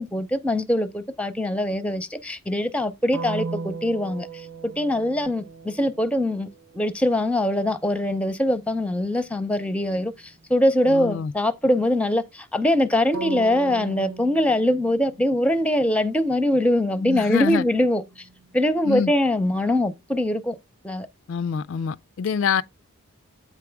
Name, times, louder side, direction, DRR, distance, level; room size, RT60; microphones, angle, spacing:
voice 1, 0.0-4.3 4.6-6.5 6.7-18.2 18.5-20.6 20.8-21.1, left 1 dB, 5° left, 0.6 m, -23 dB
sound 1, 3.1-6.9 13.1-15.9 16.4-18.7, right 3 dB, 85° right, 0.9 m, -37 dB
voice 2, 10.9-11.3 17.0-17.6 18.8-19.1 21.3-22.6, left 6 dB, 65° left, 0.3 m, -25 dB
8.3 x 4.8 x 3.4 m
head